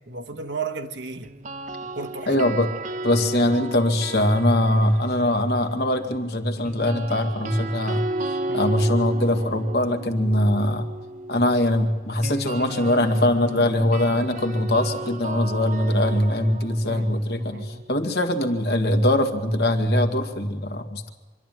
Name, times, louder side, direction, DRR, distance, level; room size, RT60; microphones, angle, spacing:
voice 1, 0.1-1.3 1.9-2.5 8.5-8.8 16.7-17.1 17.4-17.9, right 3 dB, 90° right, 3 dB, 1.6 m, -34 dB
sound 1, 1.2-5.4 6.6-18.5, right 2 dB, 45° right, 0.8 m, -34 dB
voice 2, 2.3-2.7 3.0-8.0 8.5-10.9 11.3-21.1, left 1 dB, 65° left, 6 dB, 2.0 m, -22 dB
25.0 x 12.5 x 9.3 m, 1.3 s
head